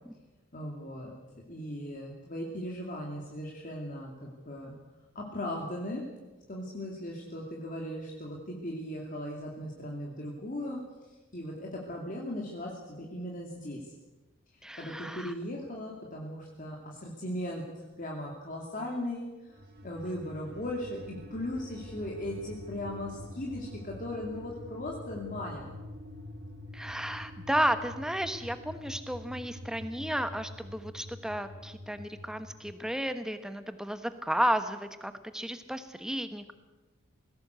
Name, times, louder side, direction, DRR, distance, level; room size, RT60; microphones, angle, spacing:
voice 1, 0.5-1.1 1.5-4.8 5.1-6.0 6.5-10.8 11.3-13.9 14.8-25.6, left 1 dB, 40° left, -1 dB, 2.6 m, -38 dB
voice 2, 14.6-15.3 26.7-36.5, equal, 5° right, 10 dB, 1.1 m, -33 dB
sound 1, 19.5-32.8, left 1 dB, 45° right, 1.9 m, -46 dB
19.5 x 16.5 x 8.1 m, 1.2 s
head